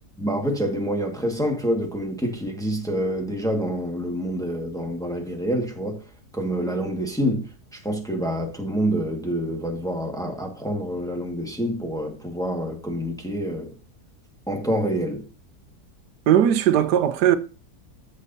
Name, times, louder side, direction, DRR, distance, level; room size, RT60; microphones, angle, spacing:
voice 1, 0.2-6.0 6.3-7.5 7.7-13.7 14.5-15.2, equal, ahead, 1.4 m, -27 dB
voice 2, 16.3-17.4, right 10 dB, 90° right, 1.3 m, -18 dB
14.5 x 6.5 x 2.7 m
omnidirectional pair, 1.7 m